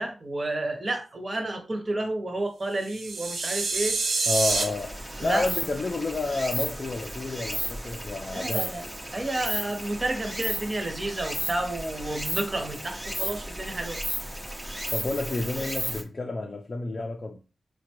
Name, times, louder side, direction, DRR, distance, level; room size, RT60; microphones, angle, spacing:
voice 1, 0.0-4.3 5.2-5.5 8.3-8.9 9.1-14.0, right 2 dB, 30° right, 0.9 m, -31 dB
sound 1, 2.8-4.6, right 3 dB, 75° right, 0.7 m, -27 dB
voice 2, 4.3-8.7 14.9-17.4, left 3 dB, 40° left, 0.4 m, -30 dB
Stream, 4.5-16.0, right 1 dB, 10° right, 0.5 m, -34 dB
4.9 x 2.2 x 2.9 m
wide cardioid pair, 105°, 0 cm